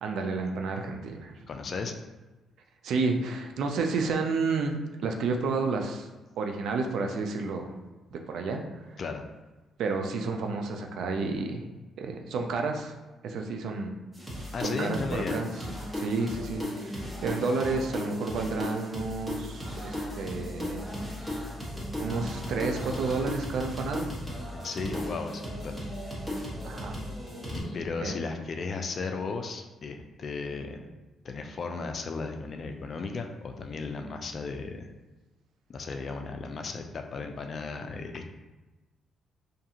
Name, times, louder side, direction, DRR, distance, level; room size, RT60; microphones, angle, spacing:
voice 1, 0.0-1.3 2.8-6.1 6.4-7.7 8.1-9.0 9.8-11.7 12.0-12.9 13.2-13.9 14.6-15.5 15.9-20.8 22.0-24.1 26.6-27.0 28.0-28.2, right 4 dB, 75° right, 3 dB, 0.3 m, -31 dB
voice 2, 1.5-2.0 9.0-9.2 14.5-15.4 24.5-25.8 27.5-30.9 31.2-34.9 35.7-38.3, left 4 dB, 50° left, 5 dB, 0.3 m, -35 dB
sound 1, 14.1-27.6, left 1 dB, 15° right, 1.0 m, -37 dB
sound 2, 15.4-27.8, equal, 30° left, 0.8 m, -43 dB
2.6 x 2.4 x 2.7 m, 1.2 s
cardioid pair, 90°, 0 cm